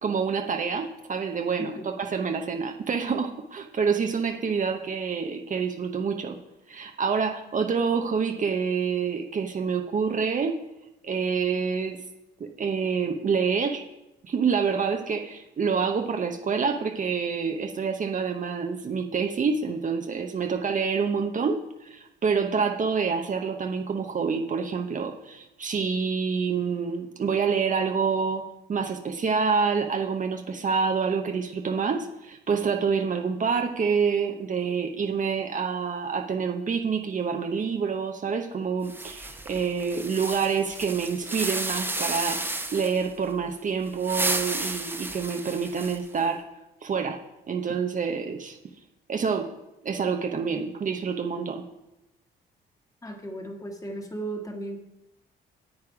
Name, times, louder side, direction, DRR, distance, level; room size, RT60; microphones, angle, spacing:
voice 1, 0.0-6.4 6.7-10.6 11.0-12.0 12.4-13.8 14.2-28.4 28.7-42.4 42.7-46.4 46.8-47.2 47.5-48.6 49.1-49.5 49.8-51.6, right 5 dB, 40° right, 4 dB, 0.9 m, -27 dB
sound 1, 38.8-43.1 43.9-46.2, right 2 dB, 10° right, 1.0 m, -32 dB
voice 2, 53.0-54.8, right 1 dB, 15° left, 4 dB, 1.7 m, -35 dB
9.6 x 8.0 x 4.9 m, 0.94 s
cardioid pair, 90°, 20 cm